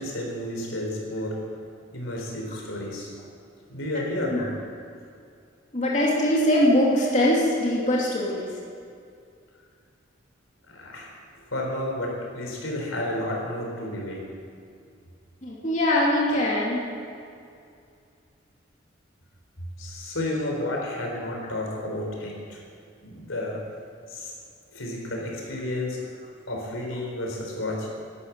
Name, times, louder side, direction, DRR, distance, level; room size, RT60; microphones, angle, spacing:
voice 1, 0.0-1.4 1.9-3.1 3.7-4.5 10.7-11.1 11.5-14.2 19.8-22.6 23.0-23.6 24.1-24.3 24.7-26.0 26.5-27.9, left 1 dB, 90° left, -1 dB, 4.3 m, -31 dB
voice 2, 5.7-8.6 15.4-16.9, left 1 dB, 35° left, -5 dB, 2.8 m, -22 dB
12.5 x 12.0 x 8.8 m, 2.4 s
head